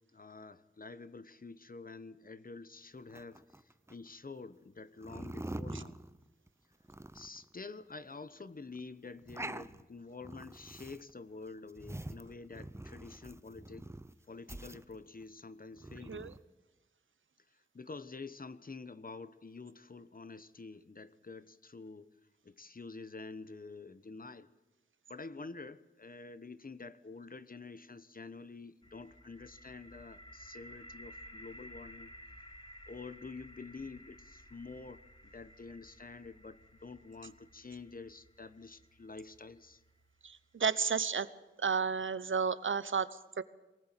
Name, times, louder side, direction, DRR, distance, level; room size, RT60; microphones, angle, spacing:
voice 1, 0.1-6.0 7.1-13.9 14.3-16.4 17.7-22.1 22.4-24.5 25.1-32.1 32.9-39.8, left 4 dB, 45° left, 14 dB, 1.1 m, -48 dB
sound 1, 3.1-3.9 5.0-6.5 6.8-7.5 7.9-8.0 8.2-8.3 8.7-8.8 9.1-9.8 10.2-11.1 11.4-14.1 14.5-15.2 15.7-16.4, right 1 dB, 15° right, 0.8 m, -45 dB
sound 2, 28.8-40.7, equal, 25° left, 1.9 m, -55 dB
voice 2, 40.2-41.3 41.6-43.4, right 6 dB, 90° right, 15 dB, 1.0 m, -32 dB
23.0 x 19.0 x 9.1 m, 1.1 s
wide cardioid pair, 85°, 20 cm